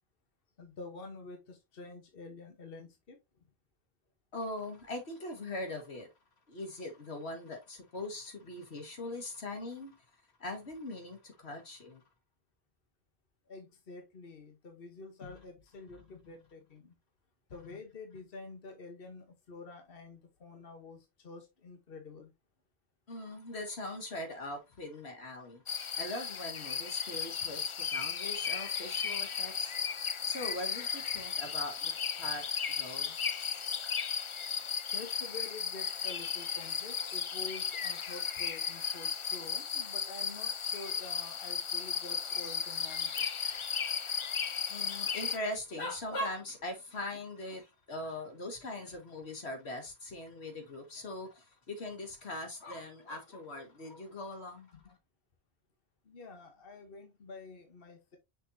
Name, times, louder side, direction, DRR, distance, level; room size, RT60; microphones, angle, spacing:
voice 1, 0.6-3.2 13.5-16.9 17.5-22.3 34.9-43.4 56.0-58.2, left 3 dB, 65° left, 1.4 m, -48 dB
voice 2, 4.3-6.1 6.5-10.0 10.4-12.0 15.2-15.5 16.0-16.2 23.1-25.6 26.0-29.7 30.3-31.9 32.2-32.5 32.8-33.2 44.7-55.0, left 1 dB, 90° left, 2.2 m, -41 dB
sound 1, 25.7-45.4, left 6 dB, 45° left, 0.4 m, -35 dB
6.3 x 5.4 x 2.7 m
omnidirectional pair, 1.1 m